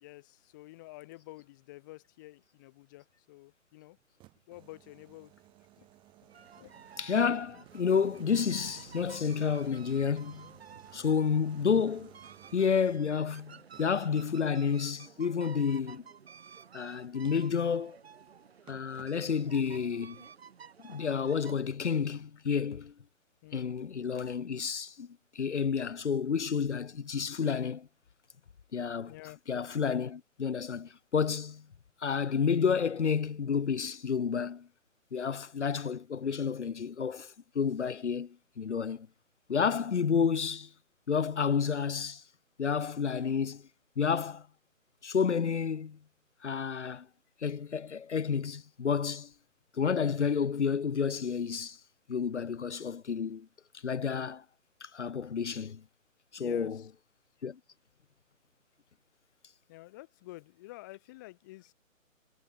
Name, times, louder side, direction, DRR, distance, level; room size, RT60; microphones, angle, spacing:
voice 1, 0.0-4.0 4.5-5.3 5.8-5.9 6.2-6.9 23.4-23.8 29.1-29.4 56.4-56.9 59.7-61.7, left 19 dB, 15° left, 1.7 m, -49 dB
sound 1, 4.0-7.2 7.7-13.1 13.7-14.1 16.4-16.5 17.2-17.6 18.3-18.4 18.7-19.2 19.7-19.9, right 17 dB, 10° right, 5.0 m, -58 dB
sound 2, 6.3-21.5, right 7 dB, 45° right, 7.5 m, -52 dB
voice 2, 7.0-10.5 10.9-12.1 12.5-16.0 16.7-18.0 18.7-20.2 20.8-22.9 23.5-25.1 25.3-27.9 28.7-29.1 29.5-31.7 32.0-34.7 35.1-39.1 39.5-40.7 41.1-42.2 42.6-43.6 44.0-44.5 45.0-46.0 46.4-47.1 47.4-49.3 49.7-51.8 52.1-53.5 53.8-54.4 54.8-55.8 56.3-56.8 57.4-57.6, left 6 dB, 55° left, 2.0 m, -30 dB
hypercardioid pair, 165°, 41 cm